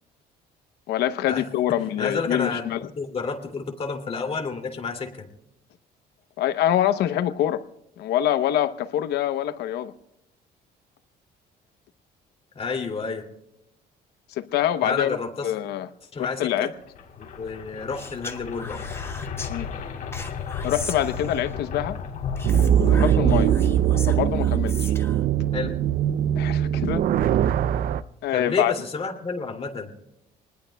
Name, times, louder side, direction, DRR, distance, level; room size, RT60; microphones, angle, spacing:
voice 1, 0.9-2.8 6.4-7.6 8.0-9.9 14.3-15.2 15.4-15.9 16.2-16.7 19.5-19.7 20.6-22.0 22.8-23.5 24.1-24.9 26.4-27.0 28.2-28.7, left 11 dB, 75° left, 11 dB, 0.9 m, -25 dB
voice 2, 2.0-5.1 12.5-13.2 14.8-15.5 16.1-16.7 17.2-18.8 25.5-25.7 28.3-29.9, left 4 dB, 35° left, 3 dB, 2.7 m, -30 dB
sound 1, 16.8-24.8, left 5 dB, 55° left, 3.7 m, -34 dB
Speech, 18.0-19.5 20.1-21.6 22.4-25.2, left 3 dB, 15° left, 1.3 m, -39 dB
sound 2, 22.4-28.0, right 10 dB, 60° right, 0.5 m, -21 dB
27.5 x 20.0 x 2.3 m, 0.88 s
cardioid pair, 110°, 17 cm